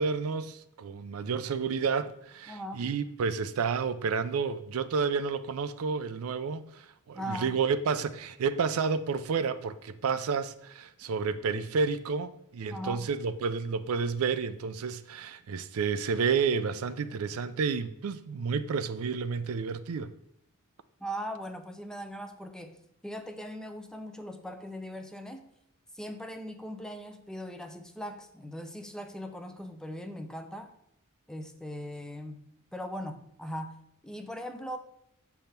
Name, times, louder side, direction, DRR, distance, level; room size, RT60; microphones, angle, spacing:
voice 1, 0.0-20.1, right 5 dB, 75° right, 0.4 m, -30 dB
voice 2, 2.5-2.9 7.1-7.6 12.7-13.1 21.0-22.8 23.0-25.5 25.9-30.7 31.3-32.4 32.7-33.8 34.0-34.8, equal, 5° left, 0.5 m, -39 dB
7.6 x 3.6 x 5.7 m
head